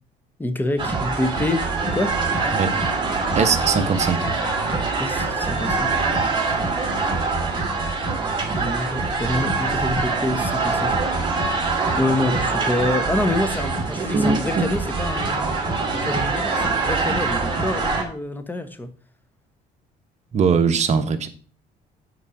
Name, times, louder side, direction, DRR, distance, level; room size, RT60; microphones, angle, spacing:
voice 1, 0.4-1.6 1.9-2.2 5.0-6.0 8.5-11.0 11.9-15.6 15.9-18.9, left 2 dB, 10° left, 9 dB, 1.2 m, -26 dB
sound 1, 0.8-18.0, right 3 dB, 25° right, 2.7 m, -24 dB
voice 2, 3.3-4.2 14.0-14.4 20.3-21.3, right 5 dB, 40° right, 7 dB, 1.3 m, -20 dB
8.5 x 4.7 x 6.3 m, 0.40 s
cardioid pair, 110°, 17 cm